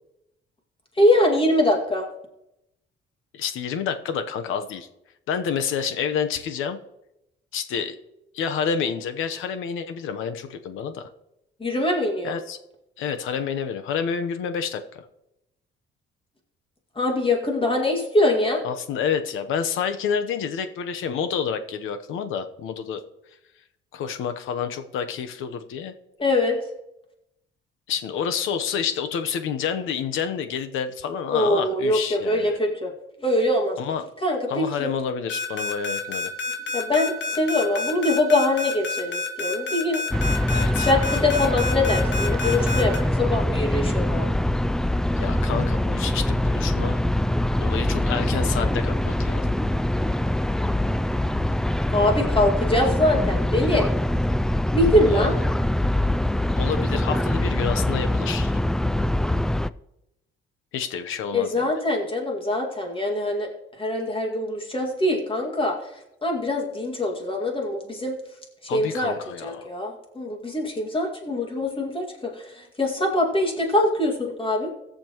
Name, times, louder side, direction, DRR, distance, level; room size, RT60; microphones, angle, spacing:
voice 1, 1.0-2.1 11.6-12.4 17.0-18.6 26.2-26.6 31.3-32.9 33.2-33.8 34.2-34.9 36.7-40.0 40.8-44.3 51.9-53.9 54.7-55.3 61.3-63.5 63.8-65.8 66.2-68.1 68.6-74.7, left 1 dB, 25° left, 1 dB, 2.1 m, -23 dB
voice 2, 3.3-4.9 5.3-6.8 7.5-8.0 8.3-11.1 12.2-12.6 13.0-15.0 18.6-23.0 23.9-25.9 27.9-32.5 33.8-34.1 34.5-36.3 40.5-41.1 45.2-47.0 47.6-49.5 55.1-55.3 56.6-58.5 60.7-61.7 68.7-69.7, left 7 dB, 85° left, 8 dB, 1.0 m, -29 dB
sound 1, 35.3-43.0, left 4 dB, 70° left, 2.1 m, -29 dB
sound 2, 40.1-59.7, left 1 dB, 5° left, 0.3 m, -23 dB
20.5 x 7.0 x 3.0 m, 0.87 s
cardioid pair, 90°, 20 cm